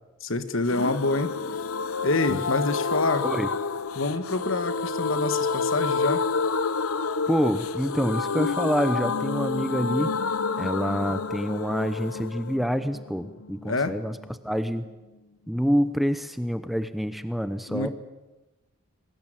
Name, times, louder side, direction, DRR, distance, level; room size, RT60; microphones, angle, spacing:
voice 1, 0.2-1.3 2.0-3.3 3.9-6.2 13.6-14.0 17.7-17.9, left 2 dB, 60° left, 10 dB, 1.5 m, -26 dB
sound 1, 0.7-14.3 14.5-14.6 14.9-15.0, left 4 dB, 80° left, 0.9 m, -29 dB
voice 2, 7.3-10.1 10.6-14.2 14.4-14.9 15.5-17.9, equal, ahead, 10 dB, 0.8 m, -27 dB
22.0 x 19.0 x 9.1 m, 1.1 s
head